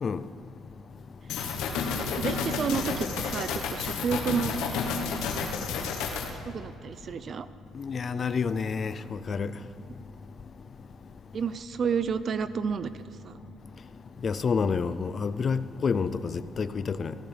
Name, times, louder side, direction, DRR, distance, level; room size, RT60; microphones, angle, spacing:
sound 1, 1.3-6.3, left 5 dB, 85° left, 1.0 m, -31 dB
voice 1, 2.1-4.5 6.5-7.5 11.3-12.9 13.2-13.4, right 6 dB, 45° right, 0.5 m, -30 dB
voice 2, 7.8-9.5 14.2-17.1, left 5 dB, 35° left, 0.3 m, -29 dB
15.5 x 12.5 x 3.3 m
cardioid pair, 120°, 0 cm